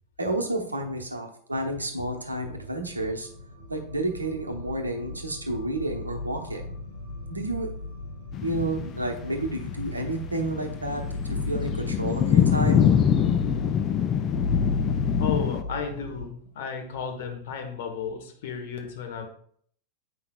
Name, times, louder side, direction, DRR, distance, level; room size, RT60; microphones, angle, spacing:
voice 1, 0.2-3.3 3.7-6.7 7.3-7.7 8.4-11.0 11.3-12.9, right 1 dB, 80° right, 3 dB, 0.9 m, -30 dB
sound 1, 2.2-16.3, left 2 dB, 85° left, 2.8 m, -35 dB
sound 2, 8.3-15.6, left 9 dB, 30° left, 0.4 m, -25 dB
voice 2, 15.2-19.3, left 6 dB, 55° left, 4 dB, 1.2 m, -33 dB
8.2 x 5.7 x 2.3 m, 0.62 s
figure-of-eight pair, 90°, 0 cm